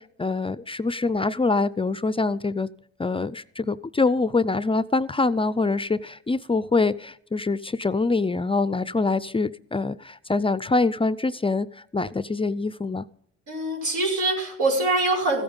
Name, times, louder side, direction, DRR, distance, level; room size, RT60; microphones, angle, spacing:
voice 1, 0.0-2.7 3.0-11.7 11.9-13.1, left 3 dB, 20° left, 17 dB, 0.4 m, -24 dB
voice 2, 13.5-15.4, right 2 dB, 90° right, 0 dB, 5.5 m, -24 dB
15.5 x 8.7 x 5.5 m, 0.66 s
cardioid pair, 90°, 30 cm